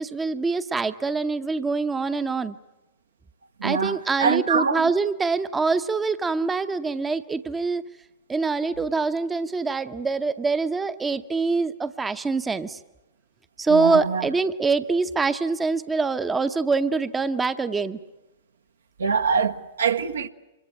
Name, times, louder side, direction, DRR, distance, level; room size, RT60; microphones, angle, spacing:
voice 1, 0.0-2.5 3.6-7.8 8.3-12.8 13.6-18.0, right 4 dB, 10° right, 0.8 m, -24 dB
voice 2, 3.6-4.9 13.7-14.3 19.0-20.3, right 5 dB, 70° right, 1.1 m, -24 dB
25.5 x 20.5 x 9.0 m
figure-of-eight pair, 105°, 0 cm